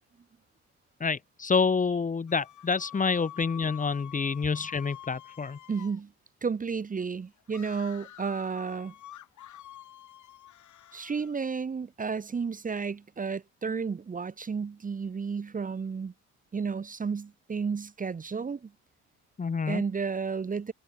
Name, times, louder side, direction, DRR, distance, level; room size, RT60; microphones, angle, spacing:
voice 1, 1.0-5.6 19.4-19.8, left 5 dB, 25° left, 1.0 m, -28 dB
sound 1, 2.3-6.0 7.5-11.4, left 12 dB, 75° left, 4.0 m, -48 dB
voice 2, 5.7-6.1 6.4-8.9 10.9-16.1 16.5-18.7 19.7-20.7, right 5 dB, 25° right, 0.9 m, -32 dB
cardioid pair, 90°, 30 cm